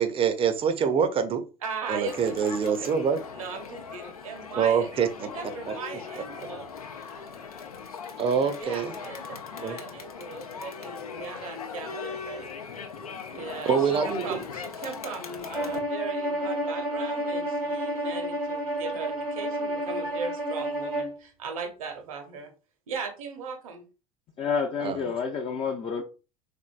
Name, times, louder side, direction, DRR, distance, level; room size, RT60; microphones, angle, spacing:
voice 1, 0.0-1.4 1.9-3.2 4.5-5.1 5.7-5.8 8.2-9.0 9.6-9.8 13.7-14.4 24.8-25.0, right 7 dB, 30° right, 0.6 m, -25 dB
voice 2, 1.6-2.9 3.3-4.9 5.2-6.7 8.6-12.5 13.3-13.8 14.0-22.5 22.9-23.8, right 5 dB, 65° right, 0.9 m, -38 dB
Crowd, 2.1-15.8, left 6 dB, 75° left, 0.6 m, -39 dB
Bowed string instrument, 15.5-21.2, right 1 dB, 90° right, 1.6 m, -30 dB
voice 3, 24.4-26.0, left 5 dB, 30° left, 0.5 m, -29 dB
3.7 x 3.5 x 2.4 m
figure-of-eight pair, 70°, 19 cm